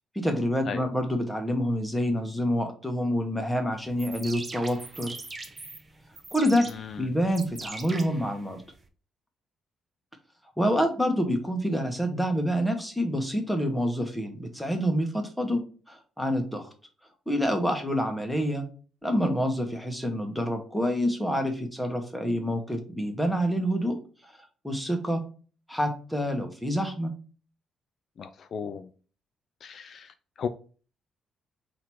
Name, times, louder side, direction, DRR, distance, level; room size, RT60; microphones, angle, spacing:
voice 1, 0.1-5.1 6.3-6.7 7.0-8.6 10.6-15.6 15.9-16.7 17.3-18.6 19.0-24.0 24.2-24.3 24.6-25.2 25.7-27.1, equal, 5° left, 1.2 m, -27 dB
sound 1, 3.8-8.8, right 2 dB, 25° right, 0.9 m, -41 dB
voice 2, 6.7-7.1 28.2-28.9 29.6-30.5, left 7 dB, 60° left, 0.4 m, -36 dB
4.0 x 2.9 x 4.5 m
cardioid pair, 90°, 0 cm